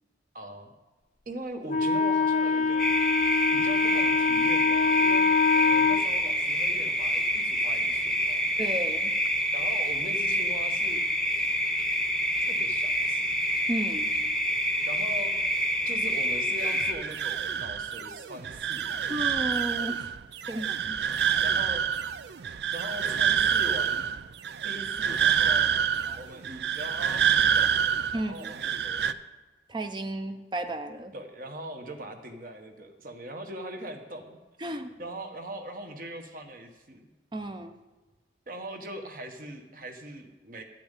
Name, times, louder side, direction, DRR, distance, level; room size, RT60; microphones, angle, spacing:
voice 1, 0.3-0.7 1.2-2.9 3.5-5.3 5.5-8.5 9.5-11.0 12.4-13.3 14.9-15.3 15.8-19.1 21.4-21.9 22.7-24.1 24.6-25.7 26.1-27.8 28.1-29.2 31.1-37.1 38.5-40.6, right 1 dB, 50° right, 4 dB, 1.3 m, -41 dB
Wind instrument woodwind instrument, 1.7-6.0, left 4 dB, 40° left, 0.5 m, -24 dB
sound 1, 2.8-16.9, equal, 5° left, 0.9 m, -27 dB
voice 2, 8.6-9.1 13.7-14.2 19.1-20.1 20.5-21.0 26.1-26.2 28.1-28.5 29.7-31.1 34.6-34.9 37.3-37.8, right 1 dB, 25° right, 8 dB, 0.6 m, -33 dB
sound 2, 16.6-29.1, right 8 dB, 70° right, 0.4 m, -27 dB
12.0 x 5.9 x 9.0 m, 1.2 s
head